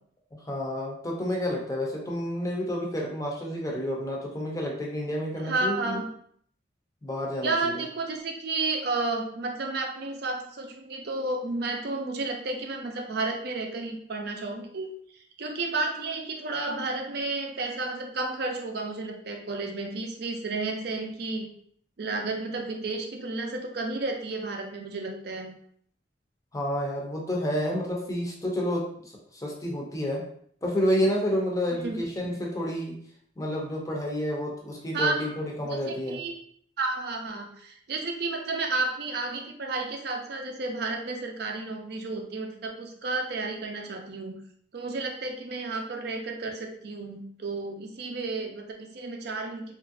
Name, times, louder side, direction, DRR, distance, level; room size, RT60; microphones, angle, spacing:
voice 1, 0.5-6.0 7.0-7.8 26.5-30.3 30.6-33.0 33.4-36.2, equal, 15° left, -2 dB, 0.6 m, -30 dB
voice 2, 5.4-6.1 7.4-21.5 22.0-25.5 31.7-32.0 32.2-32.3 34.9-35.3 35.6-36.3 36.8-44.3 44.7-49.7, right 3 dB, 55° right, 3 dB, 0.5 m, -32 dB
2.9 x 2.5 x 2.6 m, 0.63 s
head